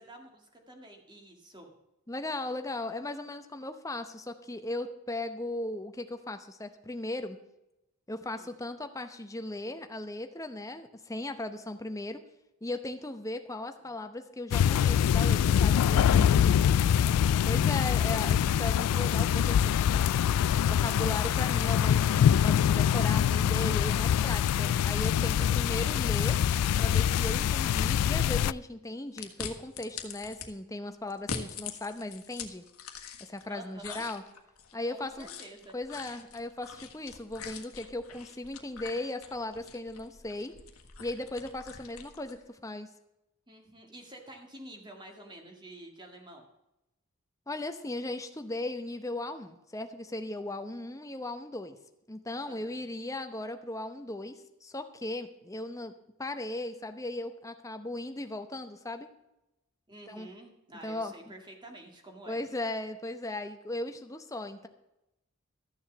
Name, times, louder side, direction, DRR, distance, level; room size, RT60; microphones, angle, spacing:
voice 1, 0.0-1.7 8.3-8.5 16.4-17.1 33.5-34.0 34.9-35.8 43.5-46.4 52.4-52.8 59.9-62.4, right 1 dB, 20° right, 3 dB, 1.9 m, -49 dB
voice 2, 2.1-7.4 8.1-12.2 12.6-16.7 17.5-19.8 20.7-26.4 26.8-32.6 33.2-34.2 34.7-35.3 35.7-40.5 41.0-42.9 47.5-51.8 52.1-55.9 56.2-59.1 60.1-60.3 60.8-61.1 62.3-64.7, left 2 dB, 15° left, 7 dB, 0.8 m, -37 dB
sound 1, 14.5-28.5, left 9 dB, 90° left, 0.3 m, -24 dB
sound 2, 29.2-30.5 31.1-33.5 33.8-42.4, left 6 dB, 75° left, 1.4 m, -44 dB
13.5 x 7.1 x 7.1 m, 0.91 s
head